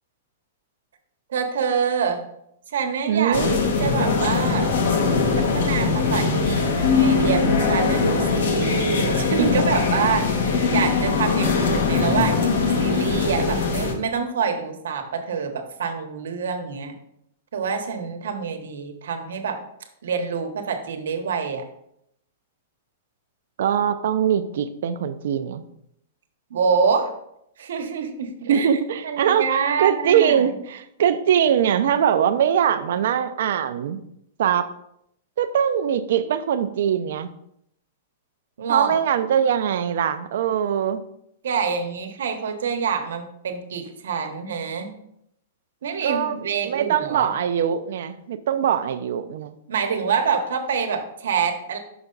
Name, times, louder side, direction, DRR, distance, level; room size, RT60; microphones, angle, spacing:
voice 1, 1.3-2.2 2.7-4.7 5.3-16.9 17.5-19.6 20.0-21.6 26.5-27.1 27.6-28.7 29.0-30.5 38.6-39.0 41.4-44.9 45.8-47.3 49.7-51.8, right 6 dB, 85° right, 5 dB, 1.1 m, -26 dB
voice 2, 3.1-3.6 23.6-25.6 28.5-34.0 34.4-34.7 35.4-37.3 38.7-41.0 46.0-49.5, right 9 dB, 60° right, 11 dB, 0.6 m, -22 dB
sound 1, 3.3-13.9, left 4 dB, 75° left, 1.3 m, -21 dB
5.9 x 5.5 x 3.9 m, 0.74 s
supercardioid pair, 170°, 0 cm